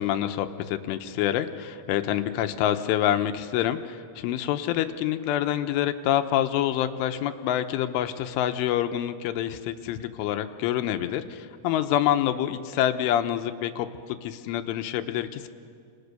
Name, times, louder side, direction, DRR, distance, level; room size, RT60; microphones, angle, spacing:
voice 1, 0.0-15.5, left 11 dB, 85° left, 8 dB, 3.4 m, -27 dB
29.0 x 28.5 x 6.8 m, 2.2 s
omnidirectional pair, 5.7 m